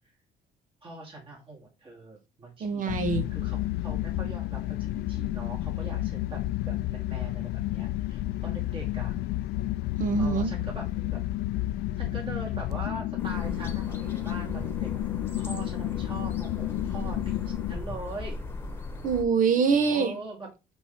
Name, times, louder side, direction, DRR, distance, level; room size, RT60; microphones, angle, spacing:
voice 1, 0.8-3.0 3.3-9.2 10.2-11.2 11.9-15.0 15.3-18.4 19.9-20.5, right 2 dB, 30° right, -3 dB, 2.6 m, -42 dB
voice 2, 2.6-3.3 10.0-10.5 19.0-20.1, right 5 dB, 50° right, 9 dB, 1.3 m, -24 dB
sound 1, 2.9-17.8, left 16 dB, 75° left, 0.4 m, -31 dB
sound 2, 13.2-19.2, left 2 dB, 15° left, 1.4 m, -38 dB
5.8 x 5.5 x 3.8 m, 0.27 s
cardioid pair, 110°, 17 cm